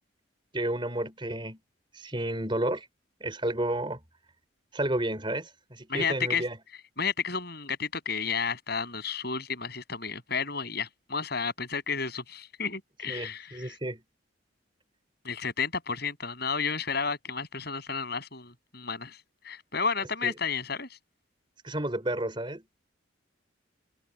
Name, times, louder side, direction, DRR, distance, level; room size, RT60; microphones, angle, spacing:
voice 1, 0.5-1.6 1.9-2.9 3.2-4.0 4.7-6.6 13.1-14.0 20.2-20.3 21.6-22.6, right 1 dB, 25° right, 4.2 m, -31 dB
voice 2, 5.9-6.4 7.0-13.8 15.2-19.2 19.4-20.9, left 5 dB, 50° left, 7.3 m, -32 dB
head